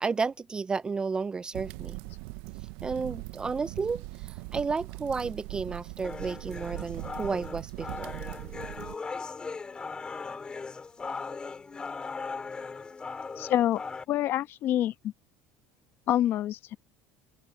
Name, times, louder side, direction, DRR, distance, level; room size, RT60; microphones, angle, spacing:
voice 1, 0.0-2.0 2.8-8.2, right 4 dB, 15° right, 0.4 m, -32 dB
sound 1, 1.5-9.0, right 22 dB, 80° right, 0.6 m, -40 dB
sound 2, 6.0-14.0, left 4 dB, 20° left, 3.4 m, -39 dB
voice 2, 13.4-15.1 16.1-16.8, left 12 dB, 50° left, 1.1 m, -27 dB
open air
cardioid pair, 140°, 5 cm